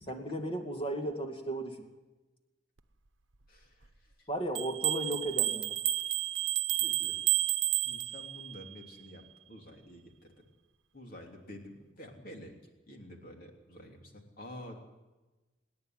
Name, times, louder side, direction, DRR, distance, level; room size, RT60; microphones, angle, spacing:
voice 1, 0.1-1.9 4.3-5.8, right 1 dB, 25° left, 3 dB, 2.3 m, -35 dB
voice 2, 3.5-3.9 4.2-4.3 6.8-7.2 7.7-10.4 10.9-12.5 12.9-14.8, left 1 dB, 45° left, 2 dB, 3.3 m, -49 dB
sound 1, 4.5-8.5, right 14 dB, 80° right, 1.0 m, -31 dB
26.5 x 10.5 x 9.6 m, 1.1 s
head